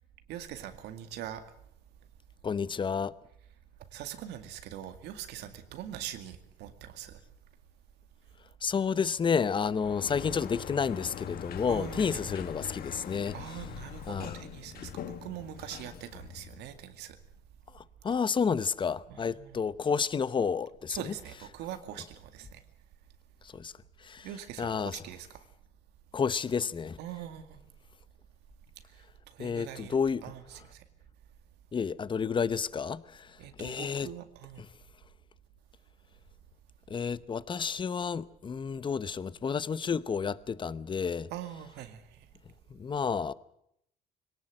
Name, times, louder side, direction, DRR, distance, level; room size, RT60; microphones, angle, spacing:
voice 1, 0.3-1.4 3.9-7.2 11.7-12.3 13.3-17.2 19.1-19.6 20.9-22.6 24.2-25.4 27.0-27.6 29.3-30.0 30.2-30.8 33.4-34.6 41.3-42.2, right 11 dB, 85° right, 2.2 m, -43 dB
voice 2, 2.4-3.1 8.6-13.3 14.1-14.4 17.7-21.1 23.4-23.7 24.0-24.3 24.6-25.0 26.1-27.0 29.4-30.2 31.7-34.1 36.9-41.3 42.7-43.3, left 6 dB, 30° left, 0.8 m, -30 dB
Sliding door, 9.7-16.8, left 9 dB, 65° left, 1.6 m, -42 dB
22.0 x 18.5 x 7.8 m
cardioid pair, 110°, 17 cm